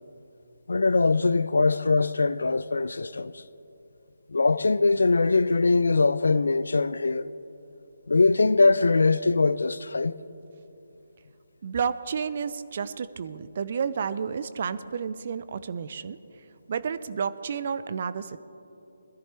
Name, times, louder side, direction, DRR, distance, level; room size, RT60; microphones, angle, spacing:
voice 1, 0.7-3.4 4.3-7.3 8.1-10.1, left 3 dB, 70° left, 0.4 m, -22 dB
voice 2, 11.6-16.2 16.7-18.4, right 6 dB, 45° right, 0.5 m, -31 dB
21.5 x 14.0 x 3.4 m
figure-of-eight pair, 145°, 0 cm